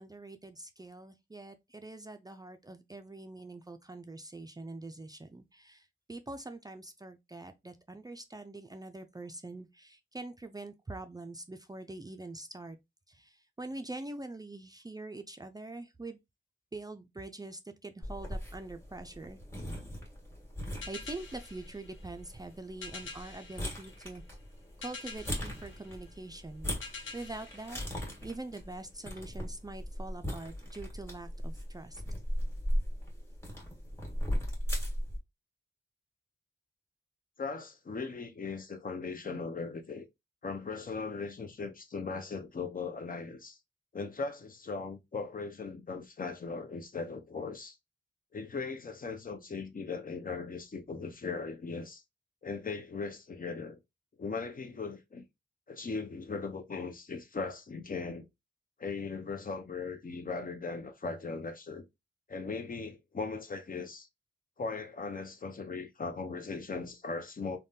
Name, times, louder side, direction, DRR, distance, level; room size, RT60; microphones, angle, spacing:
voice 1, 0.0-12.8 13.1-16.2 16.7-19.4 20.9-24.2 24.8-27.8 28.2-32.0, right 2 dB, 20° right, 0.4 m, -44 dB
sound 1, 18.0-35.2, equal, 15° left, 1.4 m, -38 dB
sound 2, 20.8-28.7, left 4 dB, 85° left, 0.8 m, -48 dB
voice 2, 37.4-40.1 40.4-43.6 43.9-47.8 48.3-52.0 52.4-53.8 54.2-55.2 55.7-58.3 58.8-61.8 62.3-64.1 64.6-67.6, left 4 dB, 45° left, 0.6 m, -38 dB
3.4 x 2.2 x 2.6 m
wide cardioid pair, 75°, 20 cm